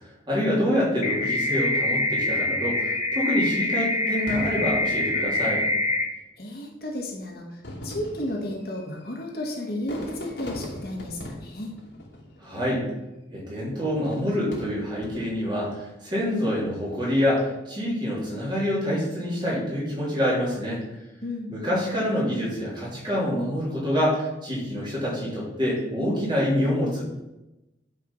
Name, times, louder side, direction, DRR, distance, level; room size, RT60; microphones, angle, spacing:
voice 1, 0.0-5.6 12.4-12.8 13.3-20.8 21.5-27.0, equal, 25° right, -6 dB, 3.4 m, -26 dB
sound 1, 1.0-6.0, left 2 dB, 35° left, 1.6 m, -25 dB
Fireworks, 4.3-5.9 6.7-6.8 7.5-12.8 13.8-15.6 16.2-16.7, equal, 85° left, 2.6 m, -40 dB
voice 2, 6.4-11.7 21.2-21.5, left 1 dB, 55° left, 0 dB, 1.9 m, -33 dB
10.0 x 5.1 x 5.6 m, 0.97 s
head